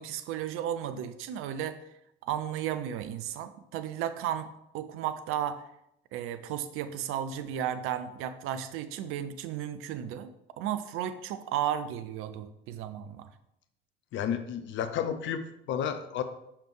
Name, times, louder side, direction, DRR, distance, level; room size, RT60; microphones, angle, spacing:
voice 1, 0.0-1.8 2.2-5.6 6.1-13.3, right 10 dB, 45° right, 11 dB, 0.6 m, -34 dB
voice 2, 14.1-16.2, left 8 dB, 40° left, 10 dB, 0.7 m, -32 dB
6.6 x 5.7 x 3.2 m, 0.80 s
figure-of-eight pair, 60°, 30 cm